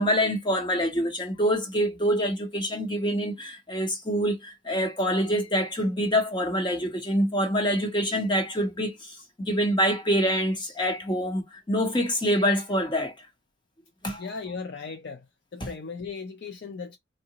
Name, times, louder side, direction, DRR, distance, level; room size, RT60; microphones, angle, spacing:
voice 1, 0.0-9.2 9.4-13.1 14.0-14.3 15.6-15.7, equal, 20° left, 0.8 m, -26 dB
voice 2, 14.2-15.3 15.5-17.0, left 4 dB, 50° left, 0.4 m, -37 dB
3.7 x 2.1 x 2.8 m
head